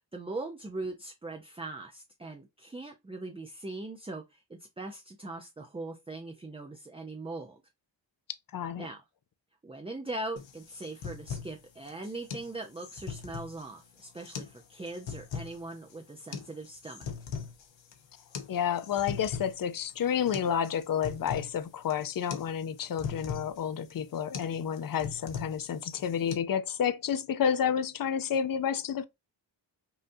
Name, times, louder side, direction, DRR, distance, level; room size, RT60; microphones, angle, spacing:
voice 1, 0.0-7.6 8.8-9.0 9.6-17.1, right 2 dB, 15° right, 0.5 m, -40 dB
voice 2, 8.5-8.9 18.5-29.1, left 8 dB, 50° left, 0.5 m, -30 dB
sound 1, 10.4-26.4, left 6 dB, 80° left, 1.0 m, -41 dB
5.6 x 2.6 x 2.6 m
wide cardioid pair, 110°, 45 cm